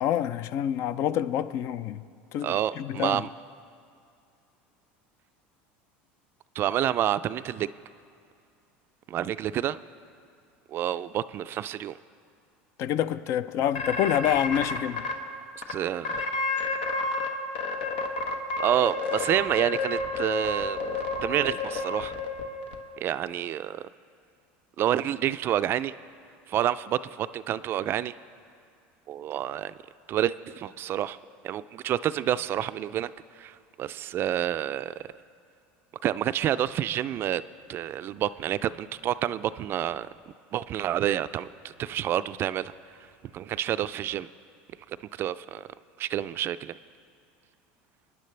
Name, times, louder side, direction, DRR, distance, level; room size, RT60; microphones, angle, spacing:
voice 1, 0.0-2.0 2.3-3.2 12.8-15.1, left 10 dB, 55° left, 0.4 m, -27 dB
voice 2, 2.4-3.3 6.6-7.7 9.1-9.8 10.7-11.9 15.7-16.2 18.6-20.8 21.2-22.2 23.0-23.8 24.8-25.9 26.5-28.2 29.1-29.7 30.1-31.2 31.4-34.9 36.0-37.4 37.7-40.1 40.5-42.7 43.3-44.3 45.2-45.7 46.0-46.8, right 11 dB, 45° right, 0.3 m, -28 dB
sound 1, 13.8-15.1 15.6-15.7 16.0-17.3 17.6-22.8, left 3 dB, 90° left, 1.2 m, -30 dB
25.0 x 10.0 x 3.3 m
supercardioid pair, 105°, 5 cm